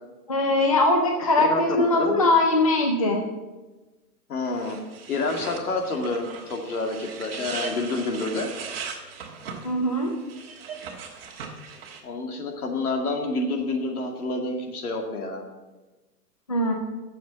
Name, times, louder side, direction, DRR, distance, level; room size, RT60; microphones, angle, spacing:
voice 1, 0.3-3.2 9.6-10.1 16.5-16.7, left 2 dB, 25° left, 2 dB, 0.4 m, -21 dB
voice 2, 4.3-4.8 5.1-8.5 12.0-15.4, left 3 dB, 70° left, 3 dB, 2.2 m, -28 dB
sound 1, 4.5-12.0, right 6 dB, 40° right, 1.5 m, -38 dB
8.9 x 7.3 x 7.3 m, 1.2 s
hypercardioid pair, 175°, 47 cm